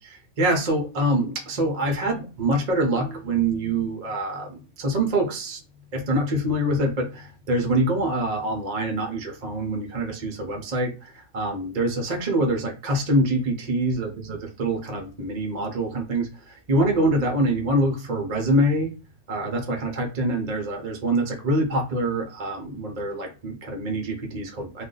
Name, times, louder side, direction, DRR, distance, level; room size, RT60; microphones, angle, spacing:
voice 1, 0.4-5.6 5.9-14.1 14.6-18.9 19.3-24.8, right 1 dB, 50° right, 2 dB, 0.5 m, -25 dB
2.5 x 2.3 x 3.7 m, 0.33 s
omnidirectional pair, 1.5 m